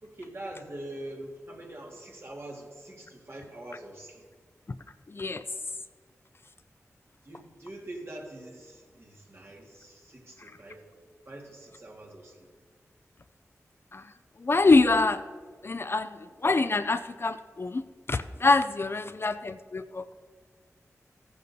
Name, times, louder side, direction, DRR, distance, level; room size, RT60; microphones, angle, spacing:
voice 1, 0.0-4.3 7.2-10.9 11.3-12.5 19.0-19.1, right 1 dB, 50° right, -1 dB, 2.0 m, -44 dB
voice 2, 5.1-5.4 13.9-14.0 14.4-15.2 15.6-17.8 18.1-20.1, left 3 dB, 45° left, 11 dB, 0.4 m, -25 dB
15.0 x 9.3 x 2.8 m, 1.5 s
cardioid pair, 45°, 6 cm